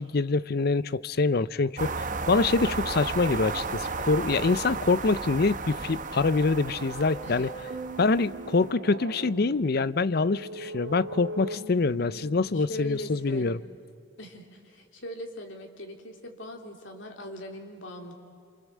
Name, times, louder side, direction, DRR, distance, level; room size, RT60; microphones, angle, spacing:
voice 1, 0.0-7.5 8.0-13.6, left 3 dB, 55° left, 17 dB, 0.6 m, -25 dB
sound 1, 1.8-8.7, right 4 dB, 45° right, 1.0 m, -34 dB
sound 2, 5.8-13.5, right 2 dB, 60° right, 2.6 m, -41 dB
voice 2, 12.5-13.5 14.2-18.1, left 1 dB, 75° left, 2 dB, 3.2 m, -40 dB
27.5 x 27.5 x 7.5 m, 2.3 s
head